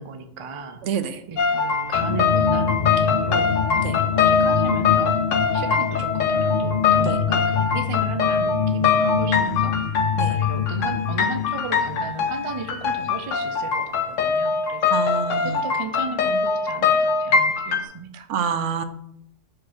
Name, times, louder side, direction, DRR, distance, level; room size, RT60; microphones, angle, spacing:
voice 1, 0.0-18.3, right 5 dB, 45° right, 8 dB, 0.4 m, -35 dB
voice 2, 0.8-1.2 3.8-4.0 7.0-7.1 10.2-10.3 14.9-15.6 18.3-18.8, right 6 dB, 75° right, 10 dB, 0.9 m, -26 dB
sound 1, 1.4-17.8, left 5 dB, 80° left, 1.1 m, -23 dB
sound 2, 1.9-13.6, left 7 dB, 50° left, 0.5 m, -26 dB
4.7 x 4.6 x 5.9 m, 0.75 s
omnidirectional pair, 1.3 m